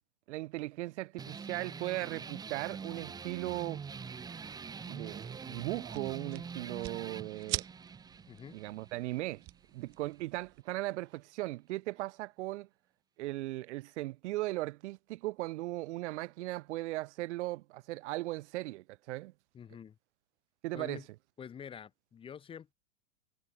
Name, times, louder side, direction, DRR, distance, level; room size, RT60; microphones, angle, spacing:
voice 1, 0.3-3.8 4.9-7.6 8.5-9.4 9.7-12.7 13.2-19.3 20.6-21.0, right 18 dB, 50° right, 0.8 m, -38 dB
sound 1, 1.2-10.2, right 5 dB, 10° right, 1.3 m, -45 dB
sound 2, 3.9-10.6, right 23 dB, 35° right, 4.5 m, -46 dB
voice 2, 8.3-8.6 19.5-20.0 20.7-21.1 21.4-22.7, left 8 dB, 10° left, 1.1 m, -47 dB
supercardioid pair, 160°, 45 cm